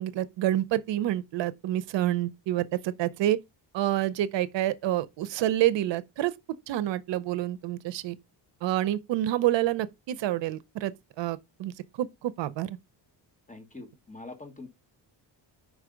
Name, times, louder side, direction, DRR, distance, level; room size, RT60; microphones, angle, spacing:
voice 1, 0.0-3.4 3.7-6.3 6.7-8.2 8.6-11.7 12.0-12.8, right 13 dB, 80° right, 0.6 m, -28 dB
voice 2, 13.5-14.7, left 3 dB, 15° left, 1.1 m, -44 dB
5.2 x 4.7 x 5.0 m
wide cardioid pair, 170°, 43 cm